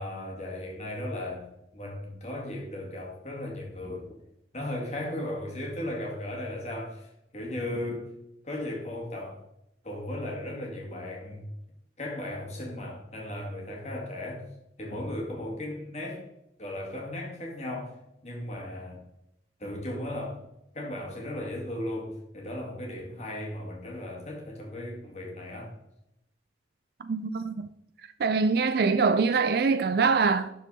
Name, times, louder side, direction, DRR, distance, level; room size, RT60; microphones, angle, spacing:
voice 1, 0.0-4.1 4.5-8.1 8.4-9.4 9.8-11.5 12.0-14.5 14.8-16.3 16.6-19.0 19.6-20.4 20.7-25.7, left 1 dB, 35° left, 2.1 m, -36 dB
voice 2, 27.0-27.7 28.2-30.5, right 4 dB, 55° right, 0.4 m, -24 dB
12.0 x 4.6 x 4.1 m
head